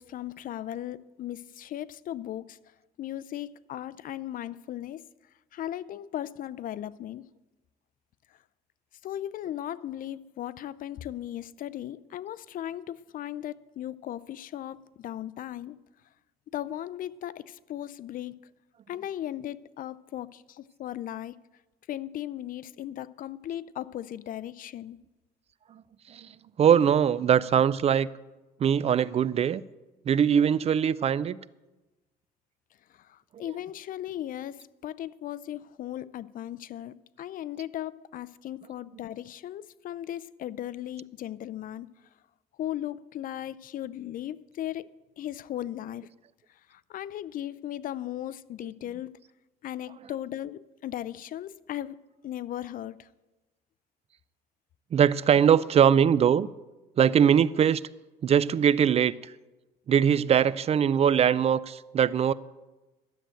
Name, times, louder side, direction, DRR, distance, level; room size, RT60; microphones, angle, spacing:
voice 1, 0.0-2.6 3.0-5.0 5.5-7.2 9.0-15.8 16.5-18.4 18.9-21.4 21.9-25.0 33.1-41.9 42.6-44.9 45.2-46.0 46.7-49.1 49.6-52.0 52.2-53.1, left 12 dB, 55° left, 0.5 m, -37 dB
voice 2, 26.6-28.1 28.6-29.6 30.1-31.4 33.4-33.6 49.9-50.2 54.9-56.5 57.0-57.8 58.2-59.3 59.9-62.3, right 8 dB, 40° right, 0.4 m, -22 dB
12.5 x 7.7 x 8.9 m
cardioid pair, 110°, 17 cm